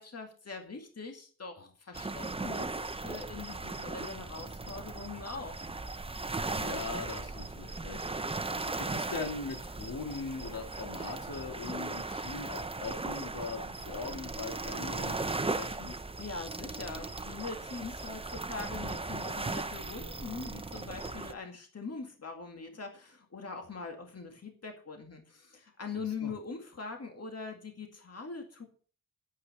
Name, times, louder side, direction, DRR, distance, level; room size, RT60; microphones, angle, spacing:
voice 1, 0.0-2.7 3.0-5.5 16.2-28.7, left 4 dB, 40° left, 3 dB, 2.2 m, -42 dB
sound 1, 1.9-21.3, right 3 dB, 15° right, 0.6 m, -37 dB
voice 2, 6.4-8.0 8.8-16.0 25.9-26.3, left 4 dB, 65° left, 3 dB, 2.3 m, -41 dB
9.4 x 8.2 x 6.6 m, 0.42 s
wide cardioid pair, 95°, 37 cm